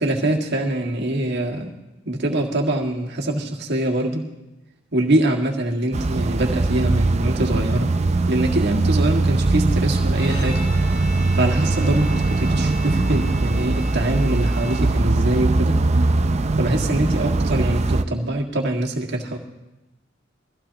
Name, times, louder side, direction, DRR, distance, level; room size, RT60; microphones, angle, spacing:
voice 1, 0.0-1.7 2.1-4.2 4.9-7.9 8.3-10.7 11.3-15.8 16.6-19.4, right 1 dB, 60° right, 1 dB, 1.9 m, -23 dB
sound 1, 5.9-18.0, right 2 dB, 35° right, 0.5 m, -21 dB
Bowed string instrument, 10.1-15.3, equal, 55° left, 3.1 m, -39 dB
23.0 x 15.5 x 2.9 m, 1.0 s
head